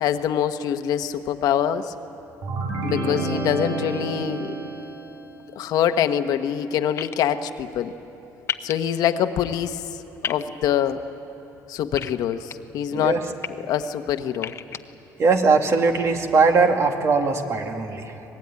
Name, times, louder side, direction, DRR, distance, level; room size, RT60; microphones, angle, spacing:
voice 1, 0.0-1.9 2.8-4.5 5.5-7.9 8.6-9.8 10.3-11.0 11.7-13.2 13.7-14.5, left 9 dB, 75° left, 9 dB, 1.1 m, -24 dB
sound 1, 2.4-5.2, right 2 dB, 80° right, 6.8 m, -29 dB
sound 2, 7.0-7.2 8.5-8.7 10.2-10.4 12.0-12.5 13.2-13.5 14.3-14.8, left 7 dB, 40° left, 0.9 m, -30 dB
voice 2, 15.2-18.2, right 4 dB, 45° right, 4 dB, 2.2 m, -20 dB
25.0 x 20.0 x 9.6 m, 3.0 s
cardioid pair, 120°, 7 cm